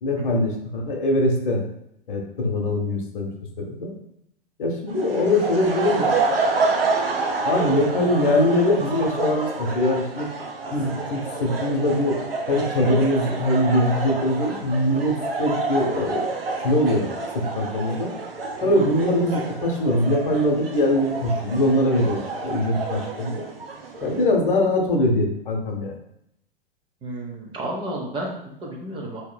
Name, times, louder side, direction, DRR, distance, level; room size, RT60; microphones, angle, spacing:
voice 1, 0.0-1.6 2.1-3.3 3.6-3.9 4.6-6.1 7.4-10.3 10.7-12.2 12.5-16.3 16.6-17.1 17.3-18.1 18.6-23.4 24.0-26.0, left 1 dB, 60° left, 1 dB, 0.9 m, -22 dB
sound 1, 4.9-24.2, right 3 dB, 80° right, 0.7 m, -28 dB
voice 2, 27.0-29.2, right 1 dB, 15° right, -1 dB, 0.6 m, -32 dB
4.5 x 2.8 x 2.2 m, 0.78 s
figure-of-eight pair, 100°, 29 cm